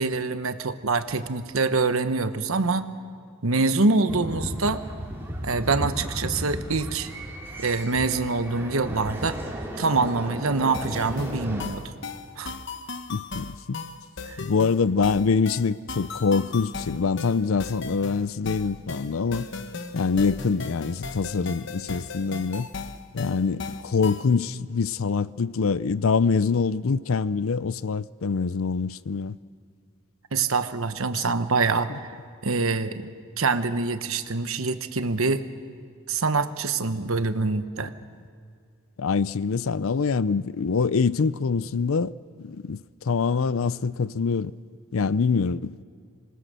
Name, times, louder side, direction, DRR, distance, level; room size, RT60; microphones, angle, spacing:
voice 1, 0.0-2.9 3.4-4.8 5.4-7.1 7.6-9.4 9.8-11.9 12.4-12.5 14.3-14.4 30.3-32.1 32.4-35.4 36.1-37.9, right 3 dB, 75° right, 1.1 m, -25 dB
sound 1, 4.1-11.6, equal, 10° right, 3.0 m, -34 dB
sound 2, 10.7-24.3, left 4 dB, 55° left, 1.0 m, -37 dB
voice 2, 13.1-13.8 14.4-19.5 19.9-22.7 23.1-29.4 31.1-31.2 31.9-32.0 37.8-37.9 39.0-42.1 42.4-44.5 44.9-45.8, left 5 dB, 75° left, 0.5 m, -25 dB
26.5 x 20.0 x 6.8 m
head